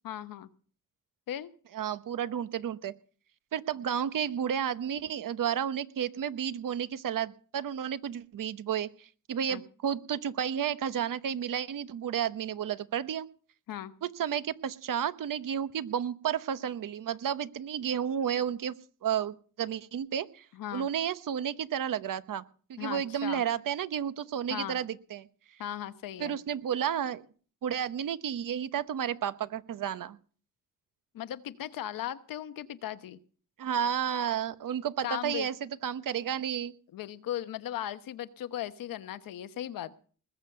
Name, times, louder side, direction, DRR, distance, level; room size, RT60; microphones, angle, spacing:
voice 1, 0.0-0.5 1.3-1.5 9.5-9.6 13.7-13.9 20.5-20.9 22.8-23.4 24.5-24.8 25.6-26.4 31.1-33.2 35.0-35.5 36.9-40.0, left 11 dB, 90° left, 12 dB, 1.0 m, -37 dB
voice 2, 1.7-2.9 3.5-13.3 14.0-18.8 19.0-20.4 20.7-22.4 22.7-25.3 26.2-27.2 27.6-30.2 33.6-36.7, right 9 dB, 75° right, 14 dB, 1.0 m, -32 dB
20.5 x 7.1 x 6.7 m, 0.43 s
cardioid pair, 65°, 33 cm